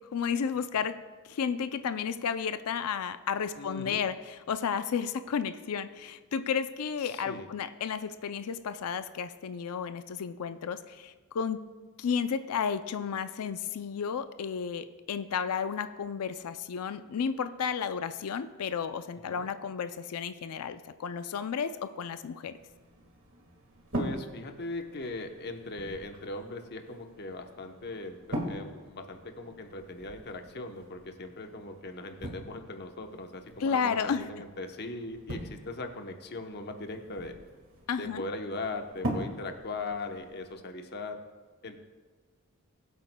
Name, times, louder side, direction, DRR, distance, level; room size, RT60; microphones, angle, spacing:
voice 1, 0.1-1.0 1.3-11.6 12.0-22.5 33.6-34.3 37.9-38.2, left 6 dB, 80° left, 11 dB, 0.4 m, -32 dB
voice 2, 3.6-4.0 7.0-7.5 19.2-19.5 23.9-28.2 28.5-37.4 37.9-41.2 41.6-41.8, left 2 dB, 50° left, 5 dB, 0.9 m, -39 dB
sound 1, 22.5-40.5, right 1 dB, 60° right, 1.8 m, -42 dB
20.5 x 8.2 x 2.2 m, 1.4 s
head